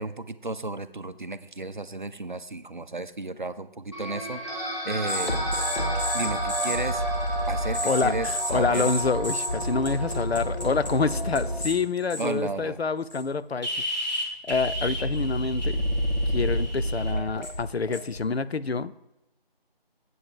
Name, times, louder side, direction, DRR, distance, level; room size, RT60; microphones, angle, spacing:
voice 1, 0.0-4.4 4.8-5.4 6.1-7.0 7.5-8.9 12.2-12.8, right 2 dB, 50° right, 12 dB, 0.5 m, -33 dB
sound 1, 3.9-11.6, right 1 dB, 30° left, 2.8 m, -33 dB
sound 2, 5.1-11.7 12.1-12.5 13.1-13.2 13.6-18.2, equal, 45° left, 1.9 m, -29 dB
voice 2, 7.8-13.7 14.5-15.8 16.3-19.0, left 4 dB, 85° left, 14 dB, 0.5 m, -27 dB
7.9 x 7.7 x 4.6 m, 0.93 s
figure-of-eight pair, 165°, 30 cm